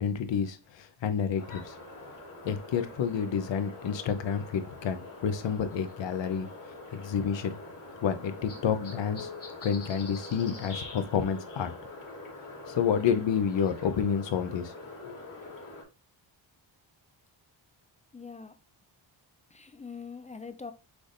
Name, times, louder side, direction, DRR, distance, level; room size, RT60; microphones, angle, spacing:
voice 1, 0.0-1.7 2.4-6.5 6.9-7.6 8.0-9.3 9.6-11.7 12.7-14.7 15.0-15.1, left 7 dB, 65° left, 0.8 m, -29 dB
sound 1, 1.4-15.8, left 2 dB, 40° left, 1.7 m, -44 dB
voice 2, 18.1-18.5 19.5-20.7, left 5 dB, 15° left, 0.3 m, -43 dB
6.1 x 3.4 x 2.6 m
wide cardioid pair, 110°, 47 cm